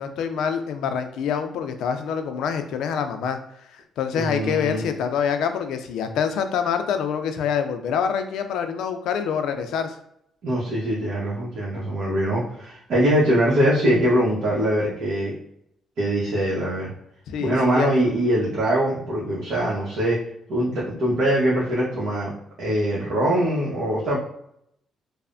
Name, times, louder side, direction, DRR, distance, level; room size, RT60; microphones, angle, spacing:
voice 1, 0.0-3.4 3.7-9.9 17.3-17.9, left 7 dB, 80° left, 7 dB, 0.3 m, -26 dB
voice 2, 4.2-4.9 10.4-15.3 16.0-16.9 17.4-20.2 20.5-22.3 22.6-24.2, right 1 dB, 70° right, -6 dB, 0.8 m, -22 dB
3.2 x 2.0 x 2.4 m, 0.74 s
cardioid pair, 90°, 0 cm